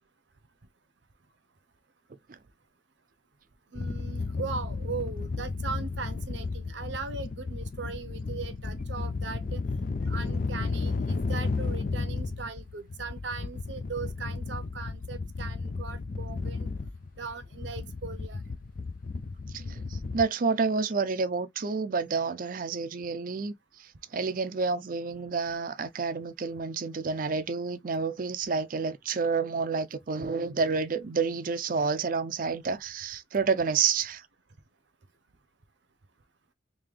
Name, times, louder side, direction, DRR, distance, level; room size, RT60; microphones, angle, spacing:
voice 1, 3.7-9.6 10.1-16.7 17.2-18.4, right 4 dB, 75° right, 0.8 m, -39 dB
sound 1, 3.8-20.2, left 3 dB, 45° left, 0.4 m, -33 dB
voice 2, 19.5-34.2, right 5 dB, 45° right, 0.5 m, -29 dB
3.7 x 2.7 x 3.2 m
head